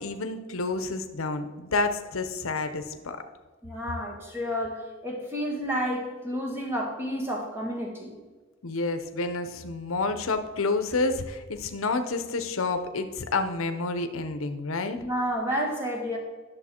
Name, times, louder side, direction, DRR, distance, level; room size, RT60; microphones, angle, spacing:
voice 1, 0.0-3.2 8.6-15.0, left 3 dB, 75° left, 9 dB, 0.7 m, -29 dB
voice 2, 3.6-8.2 15.0-16.2, equal, 10° right, -1 dB, 1.6 m, -30 dB
11.0 x 6.6 x 4.4 m, 1.3 s
head